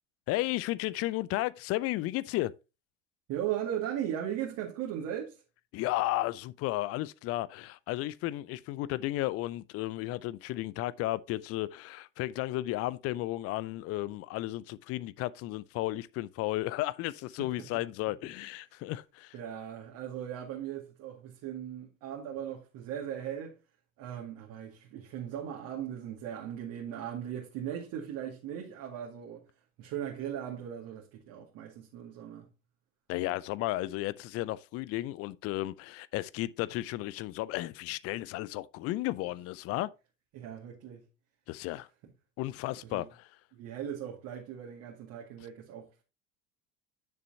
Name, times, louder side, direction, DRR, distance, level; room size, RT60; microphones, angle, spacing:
voice 1, 0.3-2.5 5.7-19.3 33.1-39.9 41.5-41.9 42.4-43.0, left 17 dB, 35° left, 0.5 m, -33 dB
voice 2, 3.3-5.4 17.4-17.7 19.3-23.6 24.0-29.4 29.8-32.4 40.3-41.0 42.8-43.1 43.5-45.9, right 10 dB, 50° right, 2.3 m, -38 dB
10.5 x 6.8 x 2.8 m
figure-of-eight pair, 70°, 39 cm